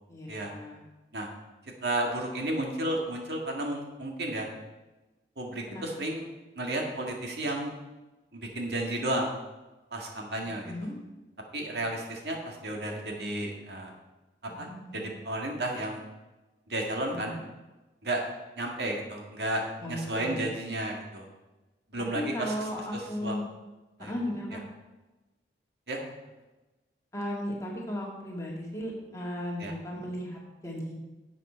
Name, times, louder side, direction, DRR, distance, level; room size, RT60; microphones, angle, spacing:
voice 1, 0.1-0.8 5.7-5.9 10.4-11.0 14.6-15.0 17.1-17.4 19.8-20.4 22.1-23.4 24.0-24.6 27.1-30.9, left 1 dB, 20° left, -3 dB, 2.0 m, -36 dB
voice 2, 1.8-4.5 5.4-6.3 6.6-7.7 8.3-9.3 9.9-10.7 11.5-13.9 14.6-14.7 14.9-16.0 16.7-17.4 18.0-18.3 18.6-21.3 21.9-23.3 24.0-24.1 25.9-26.1 29.6-29.7, right 1 dB, 70° right, 1 dB, 1.8 m, -32 dB
11.0 x 7.6 x 4.4 m, 1.1 s
head